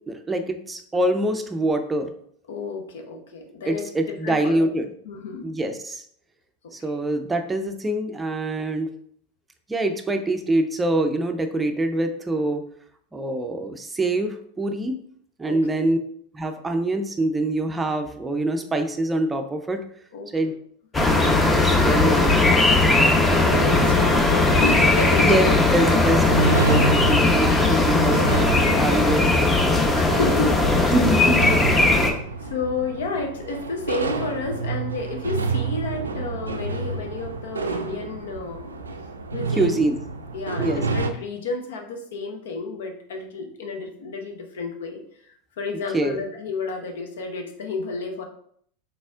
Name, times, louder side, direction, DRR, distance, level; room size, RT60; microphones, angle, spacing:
voice 1, 0.1-2.1 3.6-4.9 5.4-6.0 6.7-8.9 9.7-12.6 13.1-15.0 15.4-16.0 16.3-19.8 20.3-20.5 21.6-22.4 25.2-25.5 25.7-28.2 28.8-29.3 30.9-31.4 39.5-40.0 40.6-40.8 45.9-46.2, right 1 dB, 15° right, 6 dB, 0.5 m, -24 dB
voice 2, 2.5-4.7 5.0-5.5 6.9-7.0 15.5-15.9 20.1-20.5 23.3-25.5 26.8-27.6 27.9-28.1 29.9-31.3 31.6-38.8 39.3-39.8 40.3-45.0 45.6-48.2, left 3 dB, 70° left, 4 dB, 0.8 m, -31 dB
sound 1, 20.9-32.1, left 2 dB, 15° left, 0.7 m, -18 dB
sound 2, 21.2-41.1, right 4 dB, 90° right, 0.3 m, -30 dB
4.1 x 3.4 x 2.4 m, 0.63 s
hypercardioid pair, 90°, 0 cm